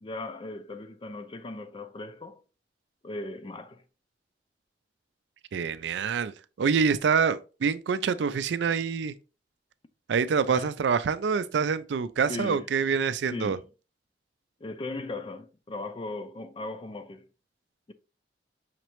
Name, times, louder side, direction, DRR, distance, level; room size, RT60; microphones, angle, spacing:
voice 1, 0.0-2.4 3.0-3.8 10.5-10.7 12.3-12.7 13.3-13.6 14.6-17.3 17.9-18.0, left 2 dB, 30° left, 0.4 m, -38 dB
voice 2, 5.5-9.1 10.1-13.6, right 6 dB, 75° right, 0.4 m, -26 dB
5.8 x 3.1 x 3.0 m
head